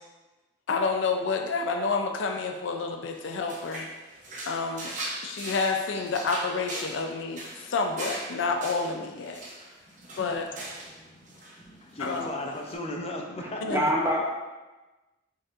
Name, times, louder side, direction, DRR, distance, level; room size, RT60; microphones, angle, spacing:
voice 1, 0.7-3.9 4.4-4.9 5.2-9.4 10.2-10.5 12.0-12.3 13.6-13.9, left 4 dB, 85° left, 5 dB, 0.4 m, -29 dB
sound 1, 3.1-11.0 11.2-11.6 12.0-12.7, right 1 dB, 40° right, 0.8 m, -40 dB
voice 2, 10.8-11.3 11.7-13.8, left 1 dB, 35° left, 1 dB, 0.5 m, -37 dB
voice 3, 13.4-14.2, equal, 15° right, -2 dB, 0.7 m, -26 dB
4.8 x 4.3 x 2.5 m, 1.1 s
head